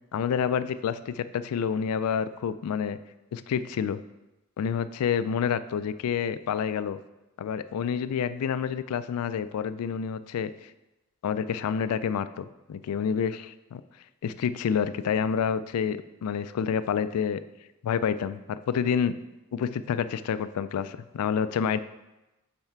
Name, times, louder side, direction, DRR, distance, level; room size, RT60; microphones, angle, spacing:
voice 1, 0.1-3.0 3.3-4.0 4.6-7.0 7.4-10.7 11.2-13.8 14.2-17.4 17.8-19.2 19.5-21.8, left 7 dB, 85° left, 14 dB, 0.3 m, -28 dB
5.7 x 4.4 x 4.4 m, 1.0 s
head